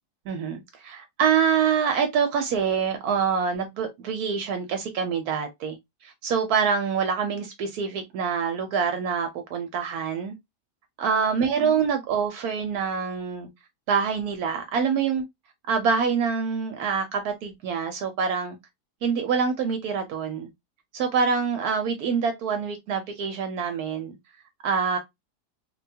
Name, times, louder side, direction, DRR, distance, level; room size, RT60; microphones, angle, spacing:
voice 1, 0.3-5.8 6.0-10.4 11.0-13.5 13.9-15.2 15.7-18.6 19.0-20.5 20.9-24.1 24.6-25.0, right 6 dB, 75° right, 1.1 m, -25 dB
3.3 x 2.2 x 2.6 m
omnidirectional pair, 1.7 m